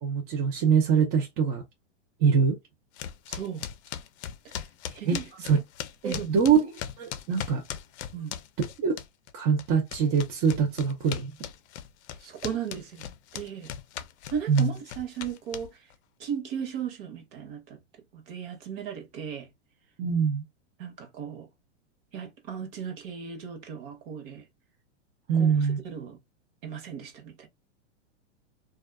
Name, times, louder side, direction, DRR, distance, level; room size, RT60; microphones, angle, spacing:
voice 1, 0.0-1.6 2.2-2.6 5.1-5.2 5.4-5.6 6.0-6.7 7.0-7.6 8.6-9.0 9.3-11.3 14.5-14.7 20.0-20.4 25.3-25.8, right 6 dB, 25° right, 0.4 m, -23 dB
sound 1, 3.0-9.3 9.6-15.9, left 10 dB, 65° left, 0.5 m, -39 dB
voice 2, 3.3-3.7 4.4-4.6 5.0-5.3 6.0-6.4 8.1-8.4 12.2-13.1 13.3-13.7 14.3-15.8 16.2-17.8 18.1-19.5 20.8-21.5 22.1-24.4 25.3-25.5 25.8-26.2 26.6-27.5, right 8 dB, 50° right, 0.9 m, -36 dB
2.5 x 2.3 x 2.2 m
hypercardioid pair, 135°, 36 cm